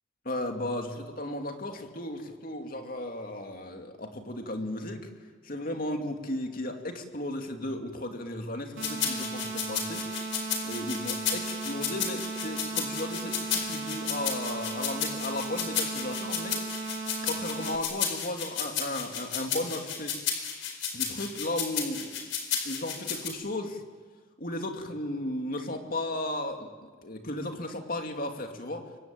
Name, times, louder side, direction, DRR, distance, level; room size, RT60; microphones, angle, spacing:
voice 1, 0.2-5.0 5.4-10.0 10.6-16.6 17.2-20.1 20.9-22.3 22.6-23.8 24.4-26.7 27.0-28.8, left 1 dB, 45° left, 4 dB, 2.6 m, -35 dB
sound 1, 8.8-23.3, left 8 dB, 70° left, 4.6 m, -32 dB
sound 2, 8.8-17.8, right 4 dB, 80° right, 3.1 m, -36 dB
28.0 x 23.5 x 9.0 m, 1.4 s
head